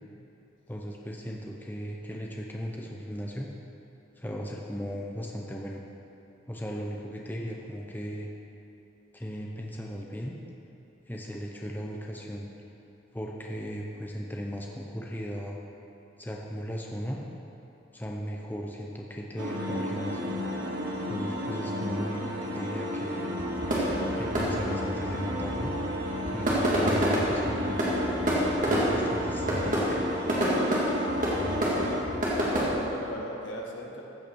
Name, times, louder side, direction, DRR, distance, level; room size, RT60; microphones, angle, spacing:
voice 1, 0.7-3.5 4.2-5.8 6.5-8.3 9.1-10.4 11.1-12.5 13.1-15.6 16.2-17.2 17.9-20.3 21.1-23.3 24.2-25.8 26.3-27.9 28.6-30.1, equal, 10° left, -1 dB, 0.7 m, -37 dB
sound 1, 19.4-32.0, equal, 75° right, 1.6 m, -33 dB
sound 2, 23.4-32.6, equal, 40° right, 2.2 m, -28 dB
voice 2, 31.4-34.0, equal, 75° left, -1 dB, 1.6 m, -39 dB
15.0 x 5.7 x 6.3 m, 2.9 s
head